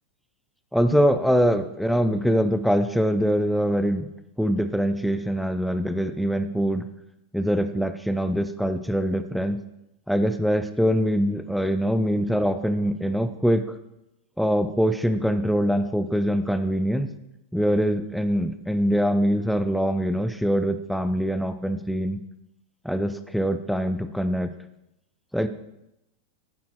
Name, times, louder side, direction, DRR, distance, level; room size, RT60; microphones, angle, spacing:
voice 1, 0.7-4.1 4.4-6.8 7.3-9.6 10.1-13.8 14.4-17.1 17.5-22.2 22.8-24.5 25.3-25.5, equal, ahead, 10 dB, 0.7 m, -23 dB
11.5 x 9.4 x 4.4 m, 0.87 s
figure-of-eight pair, 90°, 0 cm